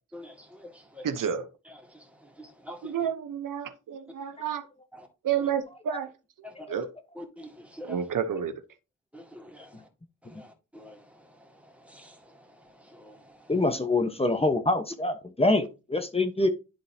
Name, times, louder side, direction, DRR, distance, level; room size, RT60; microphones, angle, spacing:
voice 1, 0.1-1.1 1.7-3.0 4.9-5.1 5.4-5.5 6.4-6.7 7.1-8.1 9.1-9.9 10.2-13.6, left 1 dB, 5° right, 2.0 m, -47 dB
voice 2, 1.0-1.5 2.8-4.6 5.2-6.1 6.7-6.9 7.8-8.6, right 8 dB, 85° right, 0.9 m, -30 dB
voice 3, 13.5-16.5, left 2 dB, 20° left, 1.0 m, -25 dB
11.0 x 4.0 x 2.7 m
cardioid pair, 70°, 31 cm